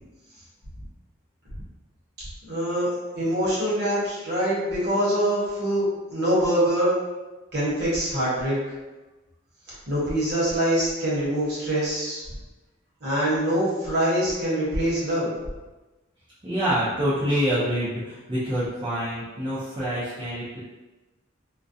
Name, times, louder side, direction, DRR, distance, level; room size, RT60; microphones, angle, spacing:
voice 1, 2.5-5.9 6.1-6.9 7.5-8.6 9.9-12.2 13.0-15.3, right 1 dB, 55° right, -7 dB, 1.0 m, -24 dB
voice 2, 16.4-20.6, equal, 25° right, -11 dB, 0.5 m, -26 dB
2.3 x 2.1 x 2.6 m, 1.1 s
head